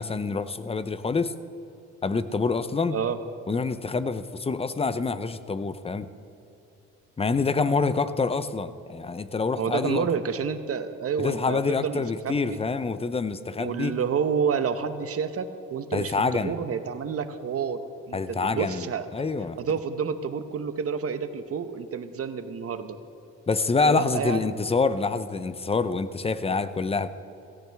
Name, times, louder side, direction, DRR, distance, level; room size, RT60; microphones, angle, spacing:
voice 1, 0.0-1.3 2.0-3.0 3.5-6.1 7.2-10.1 11.2-13.9 15.9-16.6 18.1-18.9 19.1-19.6 23.5-27.1, left 4 dB, 20° left, 13 dB, 0.6 m, -26 dB
voice 2, 9.6-12.6 13.6-17.8 18.1-19.1 19.6-23.0 23.8-24.5, right 6 dB, 50° right, 10 dB, 1.0 m, -29 dB
17.0 x 17.0 x 3.5 m, 2.8 s
cardioid pair, 90°, 30 cm